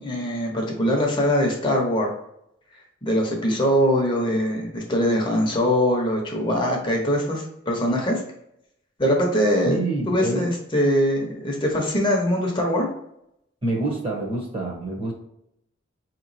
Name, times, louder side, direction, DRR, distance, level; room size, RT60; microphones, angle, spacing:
voice 1, 0.0-2.1 3.0-8.2 9.0-9.8 10.1-12.9, equal, 25° left, 0 dB, 0.8 m, -22 dB
voice 2, 9.6-10.5 13.6-15.1, right 2 dB, 30° right, -1 dB, 0.9 m, -27 dB
4.5 x 3.0 x 2.6 m, 0.78 s
head